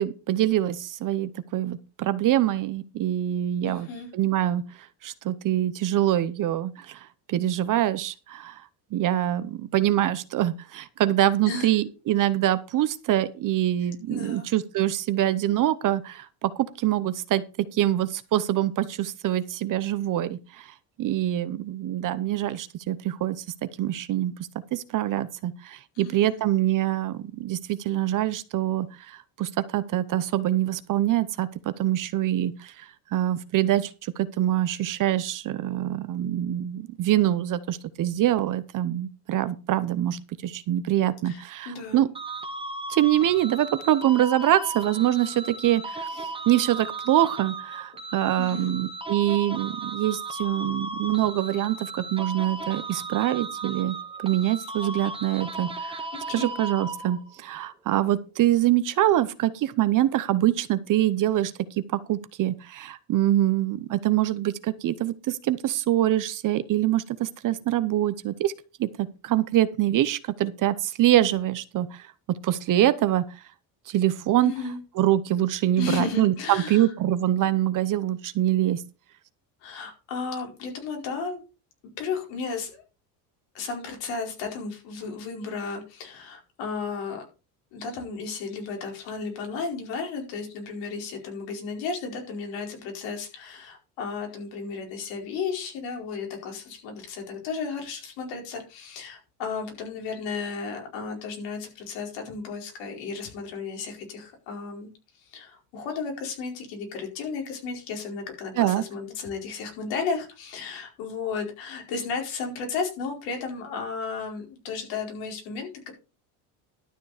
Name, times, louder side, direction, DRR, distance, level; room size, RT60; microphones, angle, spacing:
voice 1, 0.0-3.9 4.1-4.6 5.0-8.6 8.9-17.4 17.7-23.4 23.8-24.3 24.7-42.1 42.9-54.0 54.2-56.0 56.3-68.5 68.8-72.1 72.4-73.2 73.9-74.5 75.0-78.8 108.6-108.8, right 13 dB, 45° right, 13 dB, 0.8 m, -25 dB
voice 2, 3.6-4.1 11.5-11.7 13.8-14.5 25.9-26.4 41.2-42.1 48.4-48.7 56.1-56.5 74.4-74.8 75.8-76.9 79.6-81.4 82.0-82.8 83.5-87.2 87.7-104.9 105.2-115.9, left 5 dB, 80° left, 2 dB, 4.8 m, -34 dB
sound 1, 42.1-57.4, right 3 dB, 10° right, 1.5 m, -36 dB
12.0 x 6.8 x 5.0 m, 0.31 s
cardioid pair, 125°, 44 cm